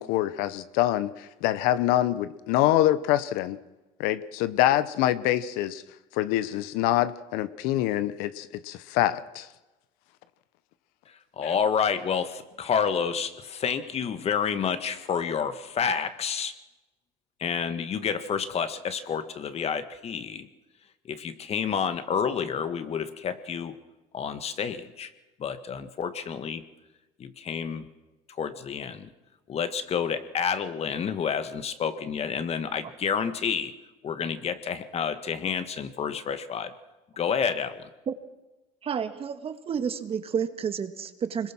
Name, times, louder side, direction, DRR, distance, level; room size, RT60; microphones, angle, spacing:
voice 1, 0.0-3.6 4.0-5.8 6.1-9.5 11.4-11.5, left 13 dB, 80° left, 15 dB, 1.0 m, -25 dB
voice 2, 11.4-16.5 17.4-20.5 21.1-23.7 24.1-25.1 25.4-26.6 27.2-27.9 28.4-29.1 29.5-33.7 34.0-36.7 37.2-37.8, left 7 dB, 45° left, 10 dB, 1.8 m, -29 dB
voice 3, 38.8-41.5, right 7 dB, 40° right, 9 dB, 1.8 m, -30 dB
25.0 x 21.5 x 6.2 m, 1.1 s
supercardioid pair, 90°, 15 cm